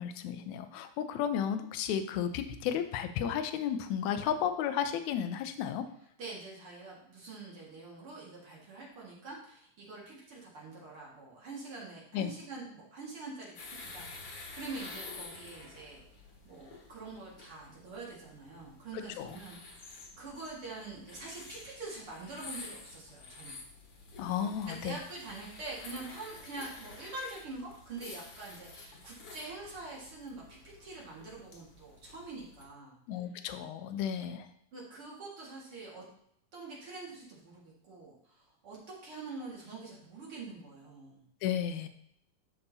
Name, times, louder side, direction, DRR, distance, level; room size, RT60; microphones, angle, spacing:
voice 1, 0.0-5.8 12.1-12.3 19.2-19.4 24.2-25.0 33.1-34.5 41.4-41.9, left 9 dB, 75° left, 9 dB, 2.0 m, -33 dB
voice 2, 6.2-16.0 16.4-23.6 24.8-33.0 34.7-36.0 36.5-41.2, right 3 dB, 50° right, -4 dB, 2.5 m, -45 dB
sound 1, 13.6-32.6, left 3 dB, 55° left, 2.1 m, -50 dB
12.0 x 5.8 x 2.8 m, 0.71 s
omnidirectional pair, 3.5 m